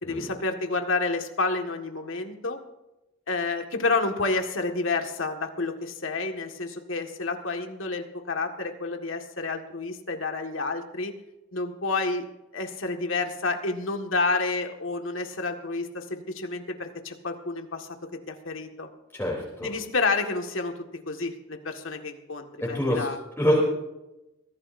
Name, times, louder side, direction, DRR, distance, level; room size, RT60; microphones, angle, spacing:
voice 1, 0.0-2.6 3.3-11.2 11.5-12.3 12.5-18.9 19.6-20.8 21.1-23.2, left 3 dB, 80° left, 4 dB, 1.8 m, -29 dB
voice 2, 19.1-19.7 22.6-23.1 23.4-23.6, equal, 10° left, -4 dB, 3.3 m, -25 dB
23.5 x 16.0 x 2.7 m, 0.95 s
head